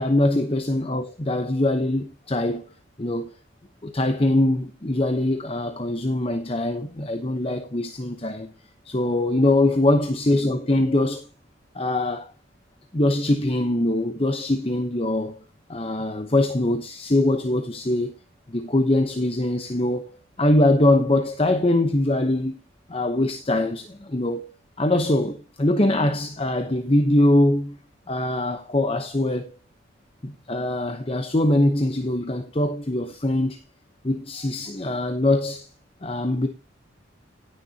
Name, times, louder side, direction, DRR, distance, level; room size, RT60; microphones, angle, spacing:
voice 1, 0.0-2.7 3.0-3.3 3.8-8.5 8.8-11.3 11.7-12.3 12.9-15.4 15.7-18.1 18.5-22.6 22.9-24.5 24.8-27.8 28.1-29.6 30.2-33.6 34.0-35.7 36.0-36.5, left 1 dB, 30° left, 0.9 m, -22 dB
17.5 x 6.8 x 2.8 m
head